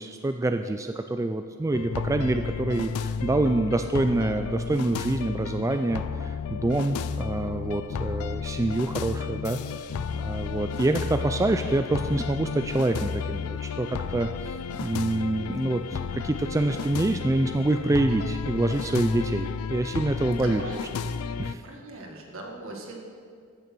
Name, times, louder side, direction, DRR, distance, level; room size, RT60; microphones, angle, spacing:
voice 1, 0.0-9.6 10.1-20.6 21.4-21.6, right 2 dB, 15° right, 7 dB, 0.3 m, -26 dB
sound 1, 1.7-21.6, left 6 dB, 80° left, 0.4 m, -32 dB
voice 2, 20.4-20.8 21.6-23.0, right 2 dB, 65° right, 1 dB, 2.0 m, -40 dB
15.0 x 6.8 x 6.1 m, 2.2 s
head